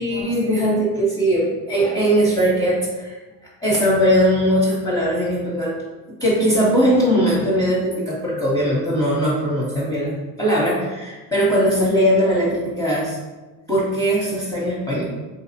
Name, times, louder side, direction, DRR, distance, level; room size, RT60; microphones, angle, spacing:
voice 1, 0.0-3.2 3.6-5.7 6.2-10.1 10.4-13.2 13.7-15.0, equal, 5° left, -7 dB, 0.7 m, -19 dB
3.8 x 2.0 x 2.7 m, 1.2 s
supercardioid pair, 75°, 48 cm